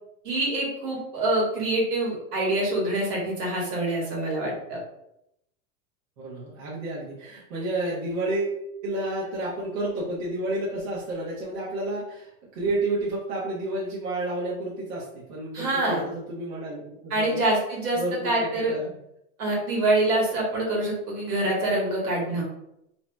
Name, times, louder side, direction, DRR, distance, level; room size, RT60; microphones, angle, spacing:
voice 1, 0.2-4.8 15.5-16.0 17.1-18.7 19.4-22.4, right 1 dB, 85° right, -3 dB, 1.5 m, -25 dB
voice 2, 6.2-17.4 17.9-19.0, right 2 dB, 65° right, -6 dB, 1.0 m, -31 dB
2.8 x 2.8 x 2.2 m, 0.80 s
supercardioid pair, 165°, 45 cm